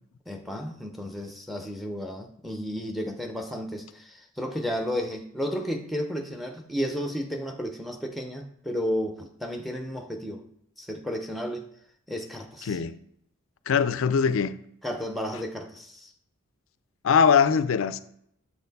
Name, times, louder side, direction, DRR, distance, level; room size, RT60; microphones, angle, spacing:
voice 1, 0.3-10.4 10.8-11.7 12.1-12.8 14.8-16.1, equal, ahead, 0.6 m, -33 dB
voice 2, 12.7-13.0 13.7-14.5 17.0-18.0, left 6 dB, 70° left, 0.4 m, -21 dB
7.2 x 4.2 x 4.0 m
head